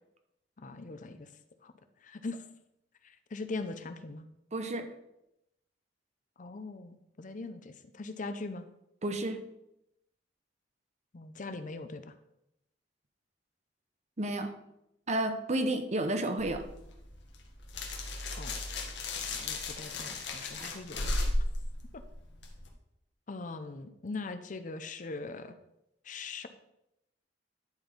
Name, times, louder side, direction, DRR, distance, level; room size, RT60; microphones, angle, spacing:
voice 1, 0.6-1.3 1.6-1.7 2.0-2.4 3.0-4.3 6.4-8.7 11.1-12.1 18.4-18.6 19.0-21.0 21.9-22.0 23.3-25.5 26.0-26.5, left 3 dB, 45° left, 10 dB, 0.6 m, -41 dB
voice 2, 4.5-4.9 9.0-9.4 14.2-14.5 15.1-16.6 20.6-20.7, right 1 dB, 40° right, 7 dB, 0.9 m, -31 dB
sound 1, 16.4-22.7, left 2 dB, 75° left, 1.4 m, -35 dB
10.5 x 4.4 x 5.1 m, 0.84 s
head